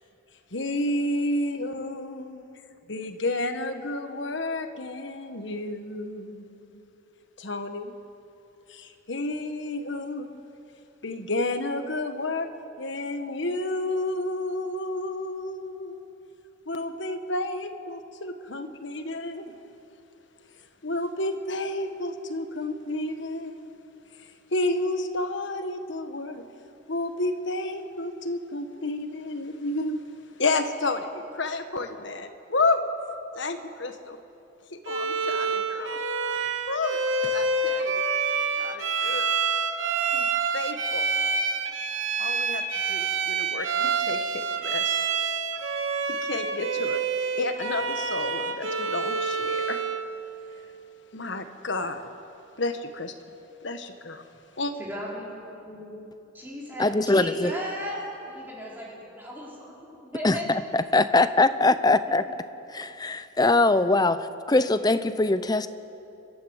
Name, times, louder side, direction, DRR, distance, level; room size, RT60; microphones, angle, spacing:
voice 1, 0.5-2.5 2.9-6.6 7.4-7.9 8.7-10.4 11.0-12.5 12.8-16.0 16.7-19.5 20.8-23.6 24.5-26.4 26.9-30.0 30.4-32.8 33.3-34.2 34.9-36.0 36.7-37.9 38.6-39.3 40.1-40.3 40.5-41.0 42.2-45.0 46.1-47.0 47.4-49.8 51.1-52.1 52.6-53.1 53.6-54.3 54.6-54.7, left 2 dB, 65° left, 7 dB, 1.4 m, -31 dB
Bowed string instrument, 34.9-50.1, right 4 dB, 75° right, 1.3 m, -27 dB
voice 2, 54.8-56.0 56.3-60.6 62.1-62.3, equal, 10° right, -5 dB, 4.2 m, -36 dB
voice 3, 56.8-57.5 60.2-62.2 62.7-65.7, left 2 dB, 20° left, 12 dB, 0.6 m, -22 dB
29.5 x 12.5 x 8.1 m, 3.0 s
head